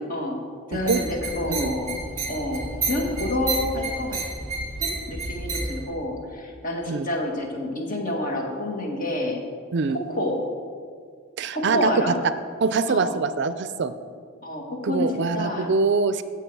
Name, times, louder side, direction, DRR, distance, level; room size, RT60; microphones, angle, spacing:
voice 1, 0.1-0.4 0.7-2.0 2.3-2.6 2.9-4.2 4.8-9.4 9.9-10.4 11.5-12.2 12.9-13.2 14.4-15.7, left 1 dB, 40° left, 0 dB, 1.7 m, -28 dB
sound 1, 0.7-5.9, right 3 dB, 20° right, 1.6 m, -30 dB
voice 2, 11.4-11.9 12.6-13.9 14.8-16.2, right 4 dB, 55° right, 12 dB, 0.4 m, -24 dB
16.0 x 5.8 x 4.7 m, 2.1 s
head